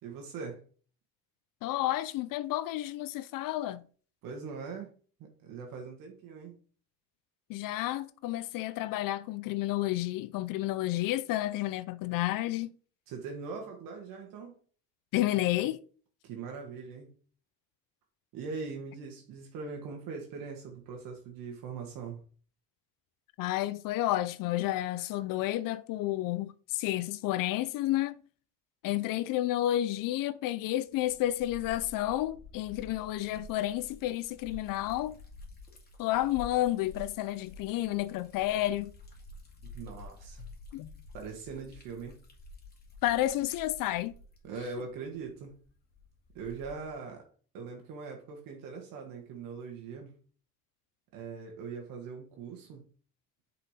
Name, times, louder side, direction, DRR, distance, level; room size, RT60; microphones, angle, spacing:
voice 1, 0.0-0.6 4.2-4.9 5.4-6.6 13.1-14.6 16.2-17.1 18.3-22.2 39.7-40.5 41.1-42.1 44.4-45.5 46.4-47.3 47.5-50.1 51.1-52.8, right 5 dB, 75° right, 1.7 m, -41 dB
voice 2, 1.6-3.8 7.5-12.7 15.1-15.8 23.4-28.2 28.8-35.2 36.0-38.9 40.7-40.9 43.0-44.1, left 15 dB, 70° left, 0.6 m, -31 dB
Liquid, 30.9-47.0, left 3 dB, 30° left, 2.4 m, -50 dB
6.1 x 5.0 x 4.9 m
cardioid pair, 130°, 34 cm